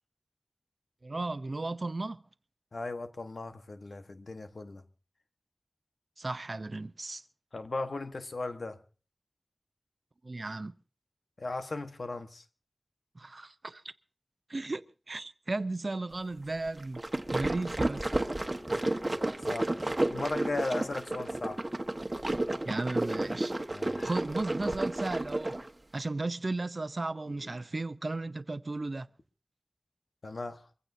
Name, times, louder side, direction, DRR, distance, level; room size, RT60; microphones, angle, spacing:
voice 1, 1.0-2.2 6.2-7.2 10.2-10.7 13.1-13.9 14.5-17.0 17.3-18.1 22.6-23.5 24.0-25.6 25.9-29.1, right 2 dB, 60° right, 0.7 m, -35 dB
voice 2, 2.7-4.8 7.5-8.8 11.4-12.4 19.5-19.8 20.1-21.6 23.7-24.1 27.3-27.5 30.2-30.6, left 2 dB, 80° left, 1.3 m, -37 dB
sound 1, 16.8-25.7, right 1 dB, 35° right, 1.3 m, -32 dB
23.5 x 15.5 x 2.7 m
wide cardioid pair, 45°, 0 cm